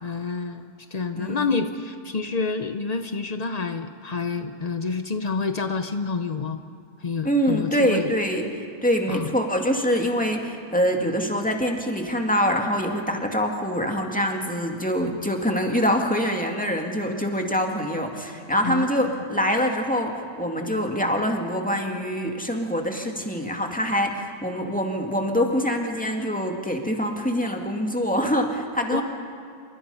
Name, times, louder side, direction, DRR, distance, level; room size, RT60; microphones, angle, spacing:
voice 1, 0.0-6.6 7.0-8.1 9.1-9.3 18.6-19.2 28.9-29.0, left 4 dB, 60° left, 8 dB, 0.4 m, -28 dB
voice 2, 1.1-1.5 7.2-8.5 8.8-29.0, equal, 5° left, 2 dB, 2.2 m, -25 dB
28.0 x 25.5 x 5.7 m, 2.4 s
omnidirectional pair, 1.9 m